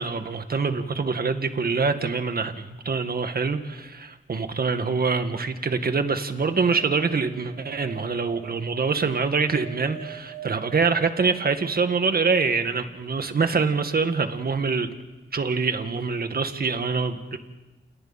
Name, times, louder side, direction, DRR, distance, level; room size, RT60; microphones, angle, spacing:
voice 1, 0.0-14.9 15.3-17.4, right 4 dB, 50° right, 2.0 m, -25 dB
sound 1, 6.4-12.6 14.9-15.0 15.1-15.2, right 14 dB, 75° right, 6.6 m, -45 dB
29.5 x 28.5 x 4.4 m
cardioid pair, 75°, 20 cm